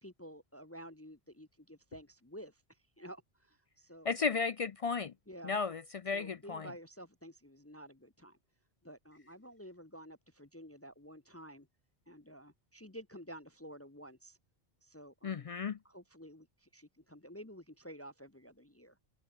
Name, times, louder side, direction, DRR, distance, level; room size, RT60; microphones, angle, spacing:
voice 1, 0.0-2.6 3.0-4.1 5.3-5.6 6.1-8.4 8.8-11.7 12.1-14.4 14.8-15.5 15.8-19.0, equal, 15° left, 0.9 m, -51 dB
voice 2, 4.0-5.1 5.4-6.7 15.2-15.8, left 5 dB, 55° left, 0.4 m, -34 dB
omnidirectional pair, 1.0 m